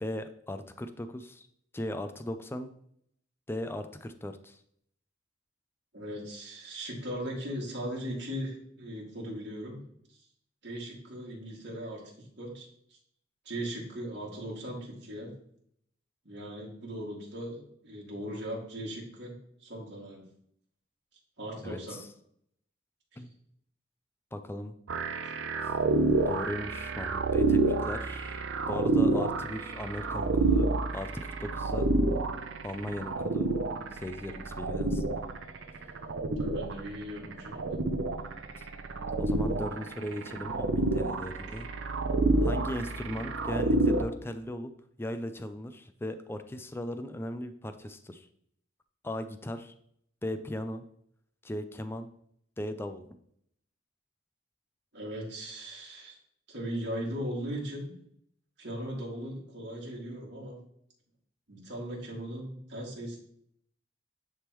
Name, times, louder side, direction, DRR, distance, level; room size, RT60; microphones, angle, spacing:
voice 1, 0.0-1.5 1.7-2.7 3.5-4.6 21.6-22.1 23.2-23.3 24.3-24.8 26.3-31.9 32.6-33.5 33.9-35.0 38.5-38.7 39.2-41.7 42.4-44.7 45.0-48.3 49.0-49.7 50.2-50.8 51.4-52.1 52.6-53.0, left 1 dB, 10° left, 9 dB, 0.4 m, -37 dB
voice 2, 5.9-9.8 10.6-12.7 13.5-15.3 16.2-19.3 19.6-20.2 21.4-22.0 23.1-23.3 36.4-37.8 54.9-56.1 56.5-57.9 58.6-60.6 61.5-63.2, equal, 60° right, -3 dB, 2.2 m, -38 dB
sound 1, 24.9-44.0, right 2 dB, 75° right, 0.6 m, -29 dB
9.8 x 3.6 x 3.0 m, 0.69 s
head